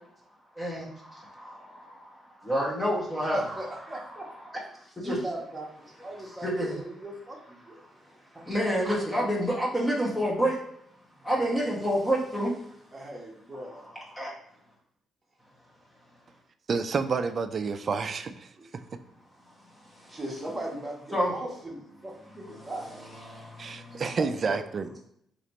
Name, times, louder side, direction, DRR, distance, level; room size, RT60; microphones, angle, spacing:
voice 1, 0.6-3.4 5.0-5.2 6.4-6.8 8.5-10.6 11.2-12.6 14.1-14.3 19.9-20.2 21.1-21.3 22.5-24.0, equal, 15° left, 1.2 m, -29 dB
voice 2, 3.3-4.5 5.0-7.8 8.3-8.5 8.8-9.0 12.9-13.9 18.6-18.7 20.1-23.0 24.0-25.0, right 1 dB, 15° right, 1.3 m, -38 dB
voice 3, 16.7-18.5 23.6-24.8, right 5 dB, 45° right, 0.3 m, -29 dB
3.1 x 2.9 x 4.1 m
cardioid pair, 90°, 0 cm